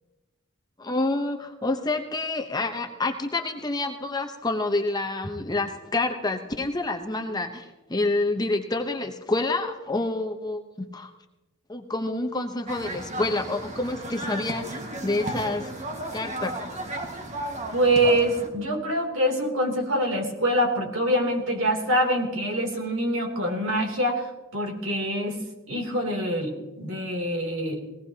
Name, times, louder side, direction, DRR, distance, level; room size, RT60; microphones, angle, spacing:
voice 1, 0.8-11.1 11.7-15.7 16.1-16.6, left 2 dB, 20° left, 4 dB, 0.9 m, -28 dB
sound 1, 12.7-18.5, right 1 dB, 35° right, 1.7 m, -34 dB
voice 2, 17.7-24.3 24.5-25.4 25.7-27.8, right 1 dB, 65° right, 1 dB, 3.1 m, -25 dB
20.0 x 18.0 x 2.9 m, 1.1 s
head